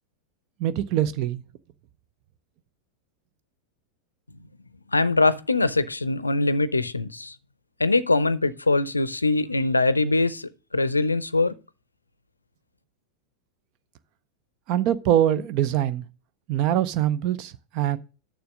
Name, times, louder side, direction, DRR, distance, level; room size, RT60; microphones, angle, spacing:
voice 1, 0.6-1.4 14.7-16.0 16.5-18.0, right 11 dB, 40° right, 0.5 m, -23 dB
voice 2, 4.9-7.3 7.8-11.5, left 3 dB, 80° left, 0.5 m, -22 dB
6.9 x 6.2 x 6.2 m
figure-of-eight pair, 90°, 0 cm